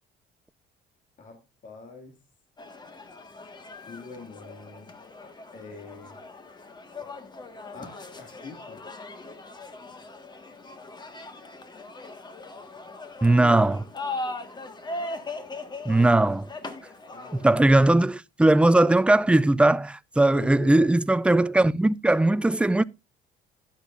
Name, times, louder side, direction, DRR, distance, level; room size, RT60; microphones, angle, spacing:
voice 1, 1.2-2.2 3.7-4.9 5.2-6.2 7.7-8.8 13.4-13.7 17.1-17.6 20.3-20.9, left 3 dB, 50° left, 2.4 m, -43 dB
sound 1, 2.6-17.5, left 2 dB, 25° left, 1.7 m, -40 dB
voice 2, 13.2-13.8 15.9-16.5 17.3-22.8, right 2 dB, 5° right, 0.4 m, -19 dB
12.0 x 10.0 x 2.6 m
cardioid pair, 110°, 17 cm